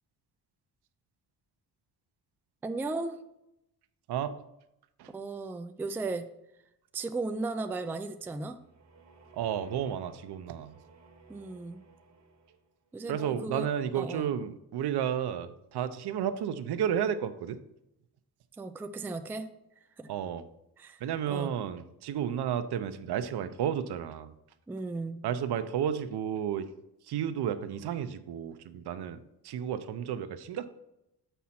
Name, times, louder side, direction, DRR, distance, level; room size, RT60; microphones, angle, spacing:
voice 1, 2.6-3.2 5.1-6.3 6.9-8.6 11.3-11.8 12.9-13.7 13.9-14.3 18.6-19.5 20.0-20.1 20.8-21.5 24.7-25.2, right 3 dB, 5° right, 8 dB, 0.3 m, -36 dB
sound 1, 8.2-12.8, right 4 dB, 40° right, 1.1 m, -56 dB
voice 2, 9.3-10.7 13.1-17.6 20.1-20.4 21.0-24.3 25.2-26.7 27.0-29.2 29.4-30.7, right 9 dB, 70° right, 11 dB, 0.7 m, -32 dB
7.3 x 5.6 x 4.3 m, 0.85 s
cardioid pair, 115°, 41 cm